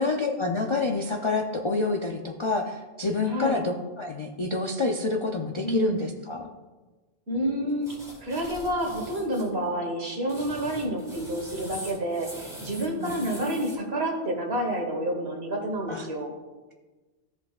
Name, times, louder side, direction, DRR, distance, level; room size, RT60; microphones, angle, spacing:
voice 1, 0.0-6.5 12.8-13.1 15.9-16.1, left 3 dB, 45° left, 1 dB, 0.4 m, -28 dB
voice 2, 3.3-3.6 5.6-6.1 7.3-16.3, right 1 dB, 65° right, 1 dB, 1.7 m, -29 dB
sound 1, 7.8-9.5 10.1-13.7, equal, 5° right, 1.7 m, -43 dB
15.0 x 5.2 x 2.4 m, 1.3 s
omnidirectional pair, 1.2 m